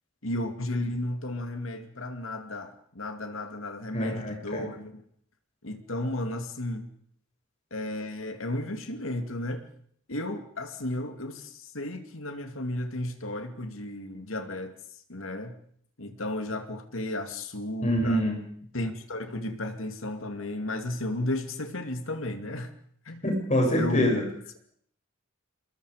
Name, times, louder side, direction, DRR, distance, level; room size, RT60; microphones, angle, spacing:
voice 1, 0.2-5.0 5.6-6.9 7.7-9.7 10.1-14.7 15.1-15.6 16.0-18.2 18.7-22.7 23.1-23.2 23.7-24.2, left 1 dB, 70° left, 7 dB, 2.6 m, -33 dB
voice 2, 3.9-4.7 17.8-18.4 23.2-24.3, equal, 35° left, 0 dB, 7.8 m, -25 dB
27.0 x 21.5 x 5.1 m, 0.63 s
head